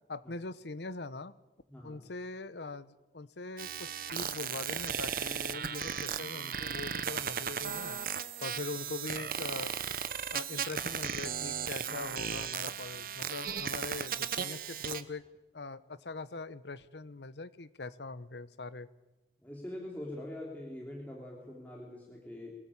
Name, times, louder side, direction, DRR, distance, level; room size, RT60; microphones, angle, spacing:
voice 1, 0.1-1.3 1.8-8.0 8.4-9.7 10.3-15.2 15.5-18.9, left 3 dB, 75° left, 16 dB, 0.9 m, -42 dB
voice 2, 1.7-2.1 8.5-8.6 19.4-22.5, left 1 dB, 10° left, -3 dB, 3.4 m, -43 dB
sound 1, 3.6-15.0, right 7 dB, 50° right, 1.0 m, -36 dB
23.5 x 17.5 x 8.6 m, 1.1 s
head